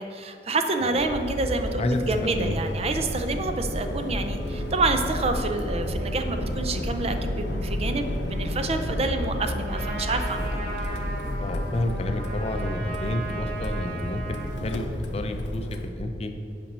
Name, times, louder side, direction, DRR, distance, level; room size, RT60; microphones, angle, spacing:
voice 1, 0.0-10.6, right 3 dB, 35° right, 6 dB, 0.5 m, -28 dB
sound 1, 1.0-15.9, left 1 dB, 80° left, 0.8 m, -31 dB
Trumpet, 9.6-14.6, right 3 dB, 55° right, 1.7 m, -37 dB
voice 2, 11.4-14.9 15.1-16.3, left 1 dB, 35° left, 6 dB, 0.5 m, -30 dB
5.8 x 5.3 x 6.7 m, 2.9 s
head